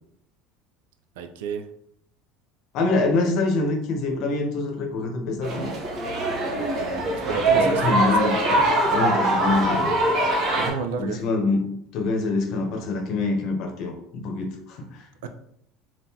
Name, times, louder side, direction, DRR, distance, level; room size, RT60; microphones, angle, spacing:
voice 1, 1.2-1.7 6.5-8.2 10.5-11.2 15.2-15.3, right 5 dB, 85° right, 7 dB, 0.4 m, -32 dB
voice 2, 2.7-5.7 6.1-6.3 7.8-8.4 8.9-9.9 11.0-15.0, left 3 dB, 60° left, 3 dB, 0.8 m, -25 dB
sound 1, 5.4-10.7, right 1 dB, 45° right, 1.0 m, -22 dB
3.7 x 2.5 x 2.8 m, 0.74 s
supercardioid pair, 110°, 0 cm